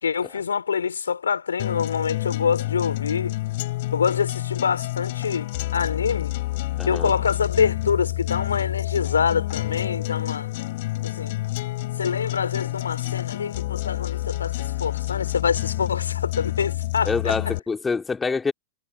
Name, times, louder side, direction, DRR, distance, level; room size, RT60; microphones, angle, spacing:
voice 1, 0.0-3.4 3.9-6.3 6.8-10.5 11.0-11.3 12.0-17.5, left 6 dB, 70° left, 4.0 m, -26 dB
sound 1, 1.6-17.6, left 18 dB, 50° left, 3.6 m, -28 dB
voice 2, 6.8-7.1 17.0-18.5, left 4 dB, 15° left, 3.7 m, -26 dB
figure-of-eight pair, 90°, 0 cm